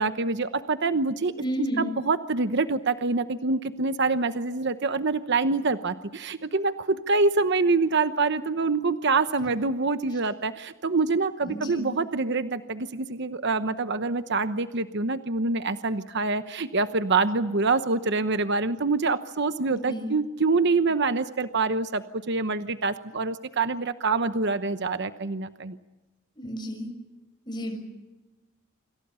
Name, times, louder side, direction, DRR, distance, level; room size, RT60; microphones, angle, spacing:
voice 1, 0.0-1.3 1.8-25.8, right 3 dB, 55° right, 10 dB, 1.0 m, -26 dB
voice 2, 1.4-1.9 10.1-10.2 11.4-11.9 19.7-20.1 26.3-26.9 27.5-27.8, equal, 20° left, 3 dB, 6.3 m, -32 dB
28.0 x 27.0 x 5.7 m, 1.1 s
head